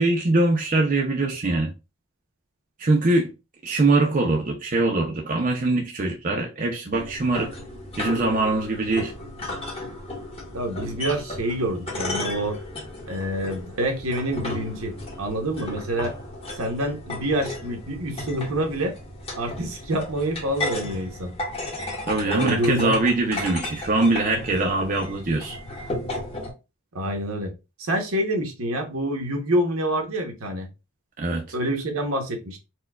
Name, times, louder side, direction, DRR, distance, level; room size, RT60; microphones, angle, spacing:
voice 1, 0.0-1.7 2.8-3.3 3.6-7.5 8.0-9.1 22.1-25.6 31.2-31.4, right 2 dB, 40° right, 0.5 m, -22 dB
sound 1, 6.9-26.5, left 2 dB, 25° left, 1.0 m, -34 dB
voice 2, 10.5-12.6 13.1-16.1 16.5-18.9 19.3-21.3 22.3-23.0 26.9-27.5 27.8-30.7 31.5-32.6, right 1 dB, 75° right, 0.9 m, -27 dB
4.3 x 2.2 x 2.3 m
head